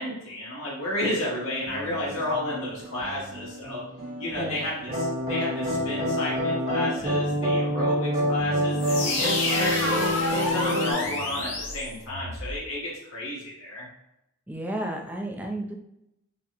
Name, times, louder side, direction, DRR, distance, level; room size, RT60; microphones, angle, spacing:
voice 1, 0.0-3.8 4.2-10.1 10.4-13.9, left 1 dB, 90° left, -6 dB, 1.2 m, -32 dB
sound 1, 1.0-11.6, right 1 dB, 75° right, 0.7 m, -42 dB
voice 2, 4.4-4.7 14.5-15.7, right 1 dB, 10° right, 1 dB, 0.4 m, -32 dB
sound 2, 4.9-10.9, equal, 40° right, 1.1 m, -26 dB
sound 3, 8.7-12.5, left 2 dB, 70° left, 0.9 m, -29 dB
5.6 x 2.1 x 2.9 m, 0.86 s
head